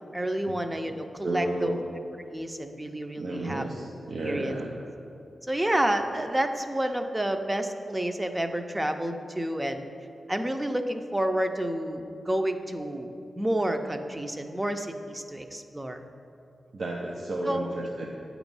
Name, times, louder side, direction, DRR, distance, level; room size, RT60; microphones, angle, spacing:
voice 1, 0.1-1.7 2.3-3.7 4.2-4.6 5.5-9.9 10.3-16.0 17.4-17.7, right 1 dB, 20° right, 7 dB, 0.5 m, -29 dB
voice 2, 1.2-1.9 3.2-4.7 16.7-18.1, right 2 dB, 70° right, -2 dB, 0.6 m, -32 dB
8.9 x 3.0 x 5.3 m, 2.7 s
cardioid pair, 40°, 0 cm